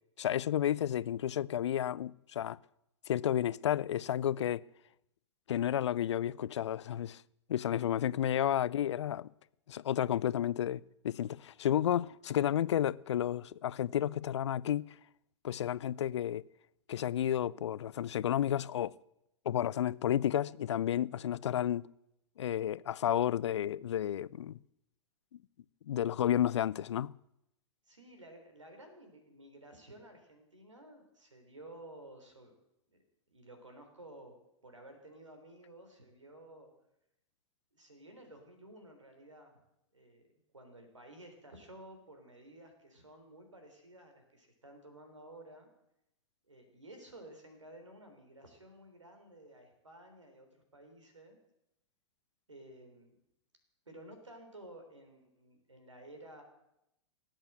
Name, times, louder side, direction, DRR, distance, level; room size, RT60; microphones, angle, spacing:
voice 1, 0.2-2.6 3.1-4.6 5.5-7.2 7.5-9.3 9.7-14.9 15.4-16.4 16.9-18.9 19.5-21.9 22.4-24.6 25.9-27.1, left 10 dB, 70° left, 0.4 m, -31 dB
voice 2, 8.1-8.7 27.9-32.5 32.9-33.0 33.3-34.3 34.6-36.7 37.7-39.5 39.9-40.2 40.5-45.7 46.5-50.5 50.7-51.4 52.5-53.2 53.9-56.4, right 1 dB, 85° right, 3.7 m, -53 dB
18.0 x 8.3 x 7.7 m
figure-of-eight pair, 100°, 15 cm